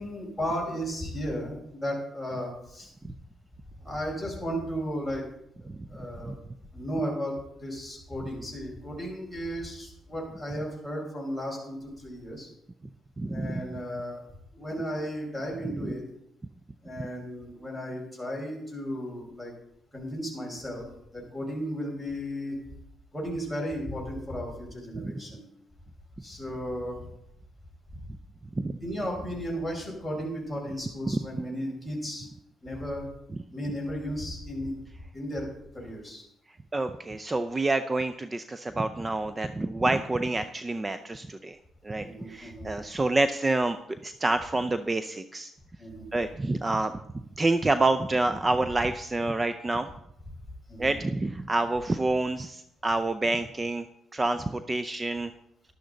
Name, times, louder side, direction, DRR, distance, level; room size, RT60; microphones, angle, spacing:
voice 1, 0.0-2.9 3.8-5.3 5.9-6.4 6.7-12.5 13.3-14.2 14.5-16.0 16.8-19.5 19.9-20.9 21.1-22.6 23.1-25.4 26.2-27.1 28.8-32.3 32.6-33.1 33.5-34.7 35.1-36.2 42.0-42.7 45.8-46.1 50.7-50.9, equal, 5° right, -1 dB, 5.3 m, -34 dB
voice 2, 13.2-13.6 15.8-15.9 24.9-25.1 28.6-28.8 31.1-31.4 36.7-41.6 41.8-43.8 44.0-45.5 46.1-49.9 50.8-53.9 54.1-55.3, right 2 dB, 20° right, 10 dB, 0.5 m, -28 dB
11.5 x 11.5 x 4.0 m, 0.77 s
cardioid pair, 90°, 0 cm